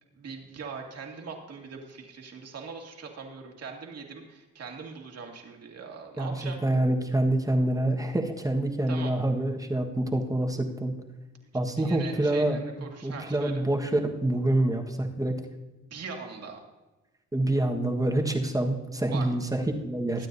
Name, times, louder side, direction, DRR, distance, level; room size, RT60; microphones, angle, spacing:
voice 1, 0.2-6.6 8.9-9.1 11.8-13.6 15.9-16.6 19.1-19.3 20.2-20.3, right 5 dB, 55° right, 1 dB, 2.3 m, -41 dB
voice 2, 6.2-10.9 11.5-12.6 13.0-15.4 17.3-20.3, right 1 dB, 10° right, 3 dB, 1.4 m, -26 dB
22.0 x 9.1 x 2.7 m, 1.1 s
cardioid pair, 90°, 30 cm